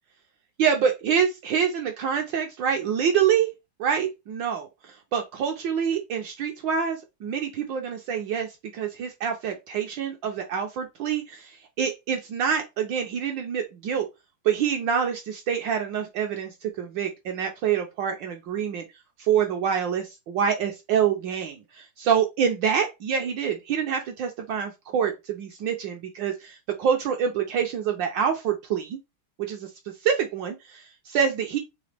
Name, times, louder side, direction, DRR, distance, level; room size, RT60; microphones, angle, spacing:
voice 1, 0.6-3.5 3.8-14.1 14.4-18.8 19.2-29.0 29.4-29.7 30.0-31.6, right 7 dB, 75° right, 1.2 m, -26 dB
4.0 x 3.1 x 3.3 m
omnidirectional pair, 2.3 m